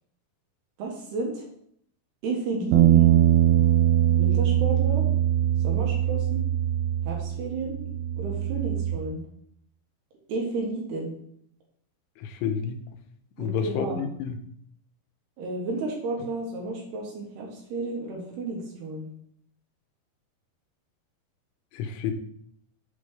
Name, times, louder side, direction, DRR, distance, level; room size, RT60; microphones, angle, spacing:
voice 1, 0.8-1.5 2.2-3.1 4.1-5.1 5.6-6.4 7.0-7.8 8.2-9.2 10.3-11.1 13.4-14.0 15.4-19.1, right 3 dB, 65° right, -1 dB, 3.1 m, -32 dB
sound 1, 2.7-9.0, right 12 dB, 90° right, 2.2 m, -22 dB
voice 2, 12.2-12.8 13.4-14.4 21.7-22.1, left 7 dB, 90° left, 7 dB, 3.2 m, -29 dB
7.6 x 5.2 x 4.9 m, 0.67 s
omnidirectional pair, 5.5 m